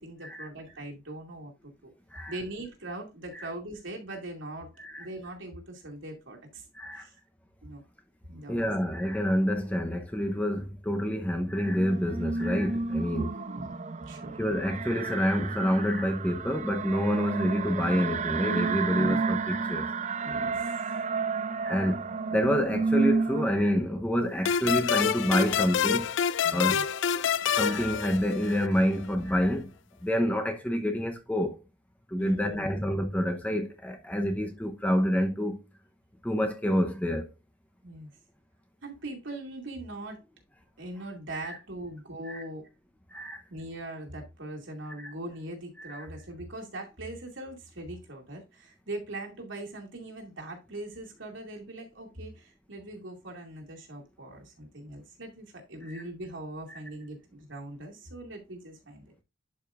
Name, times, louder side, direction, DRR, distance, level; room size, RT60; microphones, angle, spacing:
voice 1, 0.0-1.9 2.3-4.7 5.0-6.6 6.9-7.1 7.6-7.8 8.3-8.7 13.1-13.7 14.0-14.4 18.9-19.3 20.2-20.8 26.4-26.8 32.2-32.8 37.8-38.1 38.8-40.2 40.8-42.7 43.5-59.1, right 1 dB, 75° right, 2.3 m, -41 dB
voice 2, 6.7-7.1 8.5-13.3 14.4-19.9 21.6-26.1 26.5-26.8 27.5-29.7 30.0-31.6 32.1-35.6 36.2-37.3 41.4-41.6 42.3-42.4 43.1-43.4 45.0-45.1 45.8-46.0 55.9-56.0 56.7-56.8, equal, 5° left, 0.8 m, -28 dB
sound 1, 11.6-23.5, right 4 dB, 35° right, 0.4 m, -31 dB
sound 2, 24.5-28.8, left 8 dB, 70° left, 0.4 m, -27 dB
11.5 x 5.1 x 2.4 m
head